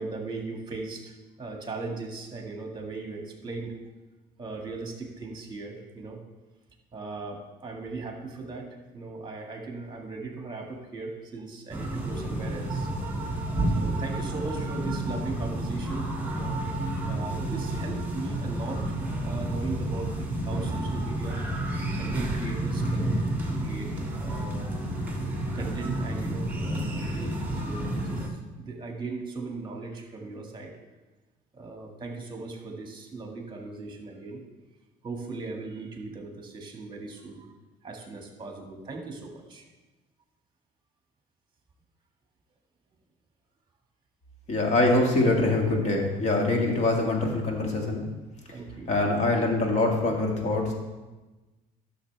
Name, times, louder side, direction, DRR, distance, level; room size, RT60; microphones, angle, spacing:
voice 1, 0.0-3.7 4.4-6.2 6.9-8.7 8.9-12.9 13.7-16.6 17.1-19.0 19.2-23.9 24.2-24.8 25.5-27.2 27.6-30.7 31.5-34.4 35.0-37.5 37.8-39.6 48.5-48.9, right 3 dB, 25° right, 2 dB, 1.8 m, -38 dB
sound 1, 11.7-28.3, right 1 dB, 10° right, 1.6 m, -30 dB
voice 2, 44.5-48.0 48.9-50.7, left 2 dB, 40° left, 1 dB, 1.9 m, -24 dB
11.5 x 6.6 x 3.4 m, 1.2 s
cardioid pair, 110°, 17 cm